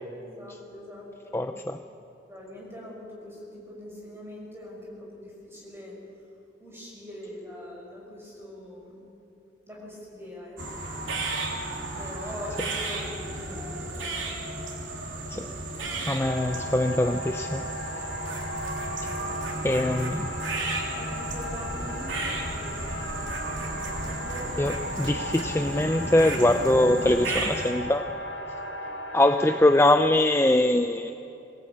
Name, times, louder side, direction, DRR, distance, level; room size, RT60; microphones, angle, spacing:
voice 1, 0.2-1.5 1.9-2.0 2.3-6.0 6.6-9.0 9.7-11.0 12.0-14.1 21.0-22.1 22.5-23.0 23.8-25.2, left 1 dB, 15° right, -3 dB, 6.2 m, -42 dB
voice 2, 1.3-1.8 15.3-15.5 16.1-17.6 19.0-19.1 19.6-20.3 24.6-28.1 29.1-31.1, left 1 dB, 15° left, 7 dB, 0.5 m, -23 dB
sound 1, 10.6-27.7, right 2 dB, 85° right, 3.3 m, -33 dB
sound 2, 16.2-30.1, left 1 dB, 75° left, 1.9 m, -37 dB
24.0 x 18.0 x 8.6 m, 2.9 s
head